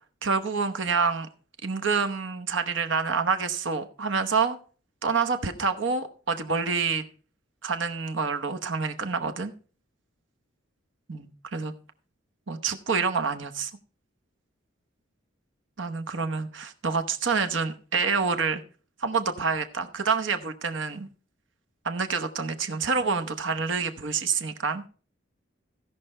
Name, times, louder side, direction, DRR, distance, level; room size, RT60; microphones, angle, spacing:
voice 1, 0.2-1.3 1.6-4.6 5.0-7.0 7.6-9.5 11.1-11.7 12.5-13.7 15.8-18.6 19.0-21.1 21.8-24.8, right 5 dB, 65° right, 1.0 m, -27 dB
15.5 x 5.5 x 4.3 m
head